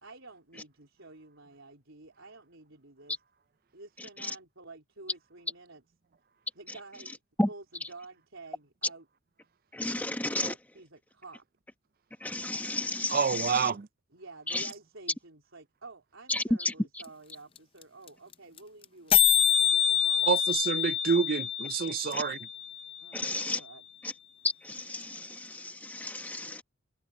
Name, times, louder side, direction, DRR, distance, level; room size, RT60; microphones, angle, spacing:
voice 1, 0.0-3.2 3.7-5.8 6.6-7.2 7.5-9.1 9.9-11.4 14.1-20.3 23.0-23.8, right 3 dB, 70° right, 3.8 m, -50 dB
voice 2, 9.7-10.5 12.2-13.7 14.5-14.7 16.3-16.7 22.1-22.2 23.1-23.6 24.0-24.1 24.6-26.6, left 1 dB, 10° left, 1.1 m, -32 dB
voice 3, 13.1-13.9 20.2-22.4, right 6 dB, 45° right, 0.4 m, -28 dB
sound 1, 17.0-17.1 17.3-17.4 17.6-17.8 18.1-18.2 18.3-18.6 18.8-18.9 19.1-23.1, left 10 dB, 25° left, 0.6 m, -26 dB
head